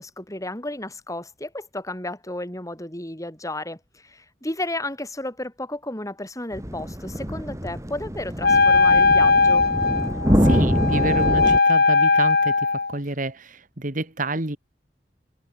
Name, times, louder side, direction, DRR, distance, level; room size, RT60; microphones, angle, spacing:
voice 1, 0.0-9.6, left 1 dB, 20° left, 7.3 m, -33 dB
sound 1, 6.5-11.6, equal, 20° right, 6.6 m, -24 dB
Wind instrument woodwind instrument, 8.4-13.0, left 4 dB, 60° left, 3.2 m, -19 dB
voice 2, 10.4-12.6 12.9-14.6, right 2 dB, 50° right, 2.6 m, -28 dB
head